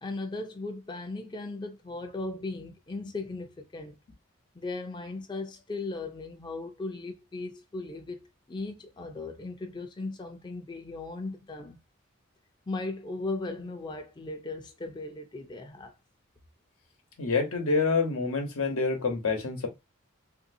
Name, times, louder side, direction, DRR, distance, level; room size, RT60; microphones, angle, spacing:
voice 1, 0.0-4.0 4.5-11.8 12.7-15.9, left 3 dB, 20° left, 0.4 m, -37 dB
voice 2, 17.2-19.7, left 4 dB, 90° left, 1.0 m, -27 dB
3.2 x 2.6 x 2.6 m
head